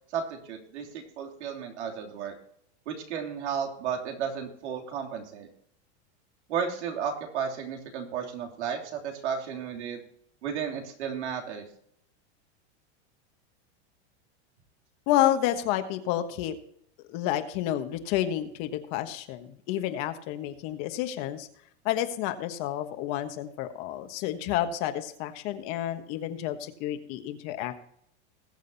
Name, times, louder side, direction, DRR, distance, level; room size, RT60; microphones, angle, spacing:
voice 1, 0.1-2.3 2.9-5.5 6.5-10.0 10.4-11.6, right 7 dB, 90° right, 1 dB, 3.1 m, -33 dB
voice 2, 15.1-16.5 17.1-21.5 21.8-27.8, left 12 dB, 40° left, 8 dB, 1.3 m, -30 dB
20.5 x 7.6 x 2.8 m, 0.70 s
supercardioid pair, 160°, 34 cm